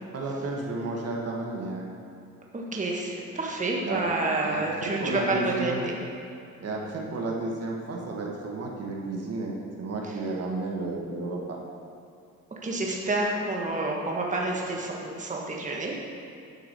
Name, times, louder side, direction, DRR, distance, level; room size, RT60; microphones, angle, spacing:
voice 1, 0.1-1.8 3.8-4.1 4.4-5.8 6.6-11.6, right 2 dB, 55° right, -1 dB, 1.5 m, -32 dB
voice 2, 2.5-6.0 12.6-16.0, right 2 dB, 25° right, -2 dB, 1.4 m, -29 dB
9.8 x 4.7 x 6.6 m, 2.5 s
cardioid pair, 90°, 30 cm